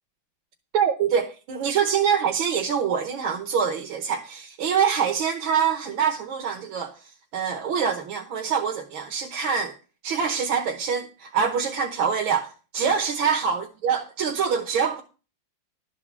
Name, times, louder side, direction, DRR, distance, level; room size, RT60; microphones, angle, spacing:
voice 1, 0.7-9.8 10.0-15.0, right 7 dB, 80° right, 1.8 m, -25 dB
12.0 x 4.8 x 7.2 m
omnidirectional pair, 2.1 m